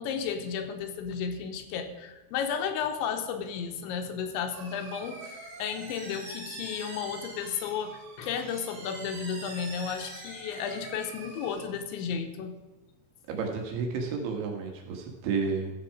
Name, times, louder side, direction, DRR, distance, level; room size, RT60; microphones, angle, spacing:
voice 1, 0.0-12.6, left 7 dB, 80° left, 6 dB, 3.2 m, -33 dB
sound 1, 4.5-11.6, right 2 dB, 45° right, 2.6 m, -44 dB
voice 2, 13.3-15.7, right 5 dB, 80° right, 2 dB, 4.0 m, -31 dB
14.0 x 7.5 x 4.8 m, 1.1 s
omnidirectional pair, 5.3 m